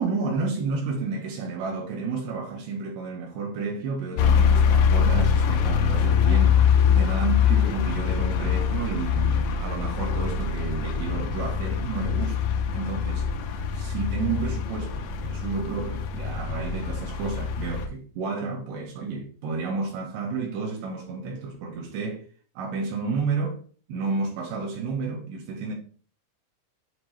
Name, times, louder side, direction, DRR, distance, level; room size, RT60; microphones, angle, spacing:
voice 1, 0.0-13.3 13.7-22.2 22.6-23.6 23.9-25.7, right 4 dB, 80° right, 3.2 m, -31 dB
sound 1, 4.2-17.9, left 7 dB, 85° left, 2.8 m, -23 dB
7.6 x 2.9 x 4.8 m
omnidirectional pair, 4.9 m